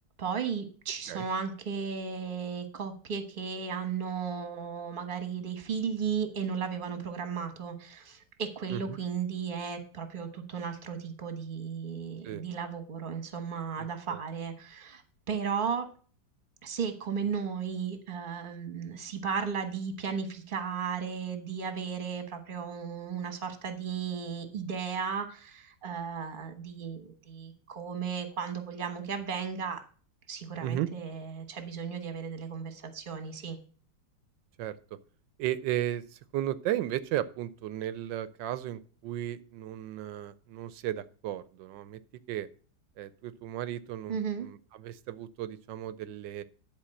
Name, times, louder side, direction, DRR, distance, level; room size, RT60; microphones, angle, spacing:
voice 1, 0.2-15.0 15.3-15.9 16.6-29.8 30.3-33.6 44.1-44.5, right 6 dB, 30° right, 7 dB, 1.2 m, -35 dB
voice 2, 13.8-14.2 30.6-30.9 34.6-34.8 35.4-42.0 42.3-42.5 43.0-46.4, right 12 dB, 75° right, 15 dB, 1.3 m, -35 dB
10.5 x 4.5 x 6.4 m, 0.41 s
omnidirectional pair, 2.0 m